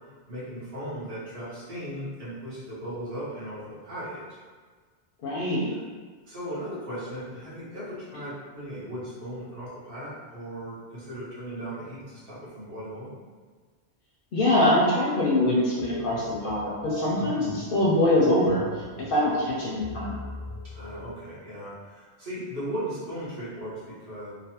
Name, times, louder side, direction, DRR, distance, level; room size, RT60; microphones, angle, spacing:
voice 1, 0.3-4.2 5.7-5.8 6.2-13.2 17.2-17.4 20.6-24.3, equal, 55° right, -10 dB, 1.2 m, -37 dB
voice 2, 5.2-5.7 14.3-18.6 19.0-20.2, left 1 dB, 60° left, -5 dB, 0.6 m, -23 dB
sound 1, 15.8-21.1, right 1 dB, 15° right, 0.7 m, -40 dB
3.1 x 2.0 x 2.8 m, 1.5 s
omnidirectional pair, 1.2 m